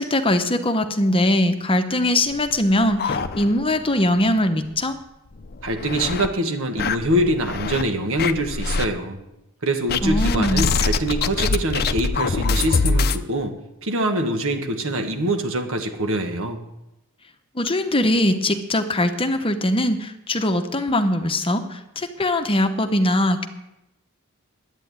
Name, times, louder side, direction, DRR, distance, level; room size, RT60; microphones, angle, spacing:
voice 1, 0.0-5.0 10.0-10.6 17.6-23.5, left 1 dB, 25° left, 7 dB, 0.9 m, -21 dB
sound 1, 2.3-3.9 4.2-4.3 4.7-4.8 5.4-6.3 6.8-7.8 8.2-8.9 9.9-13.2, left 4 dB, 45° left, 0.6 m, -24 dB
voice 2, 5.6-9.2 9.6-13.5 13.8-16.6, right 1 dB, 65° right, 5 dB, 1.7 m, -24 dB
11.0 x 9.1 x 9.2 m, 0.91 s
head